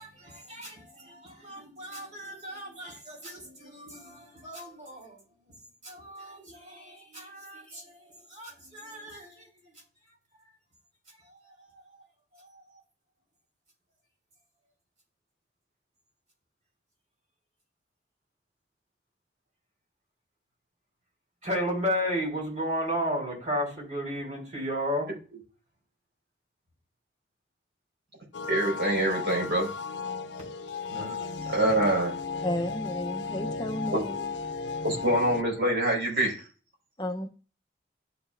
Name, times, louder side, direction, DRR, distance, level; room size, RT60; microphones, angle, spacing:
voice 1, 0.0-5.2 5.8-9.5 11.3-12.0 12.3-12.8 21.4-25.1 30.9-31.4, equal, 40° right, 4.2 m, -34 dB
sound 1, 28.3-35.4, left 4 dB, 85° left, 0.5 m, -35 dB
voice 2, 28.5-29.7 31.4-32.2 33.9-34.0 34.8-36.4, right 1 dB, 65° right, 4.5 m, -25 dB
voice 3, 32.4-34.4 37.0-37.3, left 1 dB, 25° left, 0.7 m, -33 dB
12.0 x 5.1 x 2.5 m
head